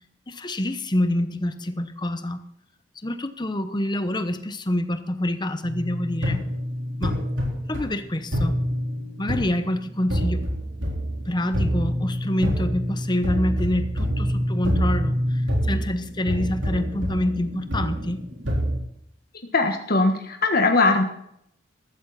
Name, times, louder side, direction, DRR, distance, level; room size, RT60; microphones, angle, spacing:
voice 1, 0.3-2.5 3.0-6.5 7.0-7.2 7.7-8.6 9.2-10.4 11.3-15.2 15.7-18.2, left 1 dB, 25° left, 10 dB, 1.0 m, -26 dB
sound 1, 5.6-18.8, equal, 80° right, 4.0 m, -26 dB
voice 2, 19.5-21.0, left 3 dB, 55° left, 4 dB, 1.5 m, -20 dB
14.5 x 13.0 x 4.2 m, 0.72 s
head